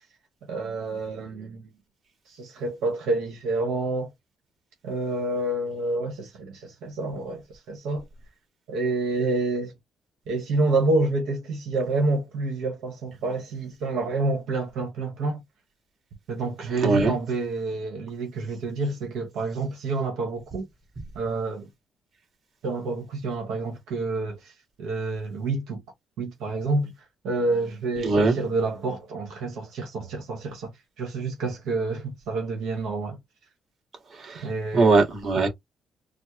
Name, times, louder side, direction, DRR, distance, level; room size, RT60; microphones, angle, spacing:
voice 1, 0.4-1.7 2.3-4.1 4.8-8.1 8.7-9.7 10.3-15.4 16.3-20.7 21.1-21.7 22.6-25.8 26.2-26.9 27.2-30.7 31.0-33.2 34.4-34.9, right 3 dB, 85° right, 1.2 m, -28 dB
voice 2, 28.0-28.4 34.2-34.4 34.7-35.5, right 3 dB, 50° right, 2.0 m, -20 dB
4.2 x 2.0 x 3.1 m
cardioid pair, 90°, 0 cm